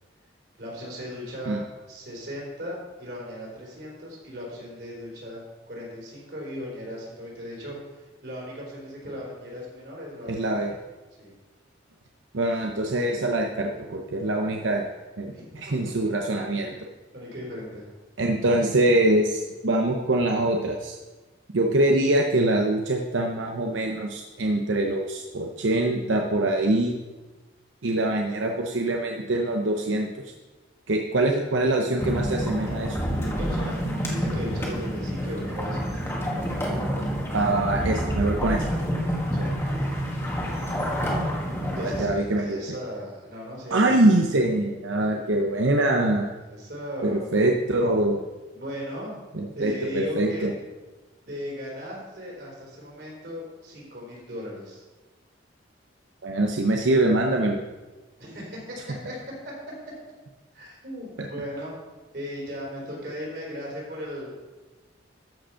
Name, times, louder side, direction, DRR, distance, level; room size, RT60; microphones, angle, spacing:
voice 1, 0.6-5.4 5.7-10.4 11.2-11.3 15.3-15.7 16.2-16.3 16.6-16.8 17.1-17.9 27.8-28.1 33.3-33.8 34.1-36.3 39.0-39.5 41.7-44.0 46.4-47.2 48.5-49.2 49.6-50.5 51.3-54.8 58.2-59.2 59.4-59.5 60.5-61.7 62.1-64.6, equal, 55° right, -3 dB, 4.0 m, -37 dB
voice 2, 10.3-10.7 12.3-14.9 15.2-16.7 18.2-21.0 21.5-27.0 27.8-30.1 30.9-33.0 37.3-38.7 41.8-42.6 43.7-46.3 47.0-48.2 49.3-50.5 56.2-57.6 61.2-61.3, right 1 dB, 90° right, 1 dB, 0.8 m, -24 dB
sound 1, 32.0-42.0, equal, 15° left, 1.5 m, -28 dB
13.5 x 5.2 x 5.7 m, 1.2 s
head